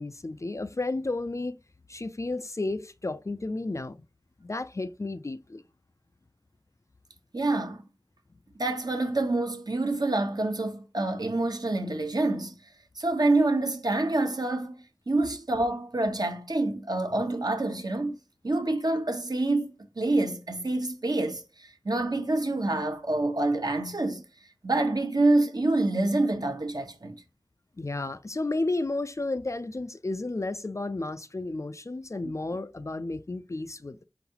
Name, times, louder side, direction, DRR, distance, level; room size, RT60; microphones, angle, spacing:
voice 1, 0.0-1.6 1.9-4.0 4.4-5.6 27.8-34.0, left 2 dB, 35° left, 0.4 m, -32 dB
voice 2, 7.3-7.8 8.6-12.6 13.0-14.8 15.1-18.1 18.4-19.7 20.0-24.2 24.6-27.1, right 2 dB, 55° right, 1.0 m, -27 dB
4.6 x 3.9 x 2.9 m
wide cardioid pair, 50°, 8 cm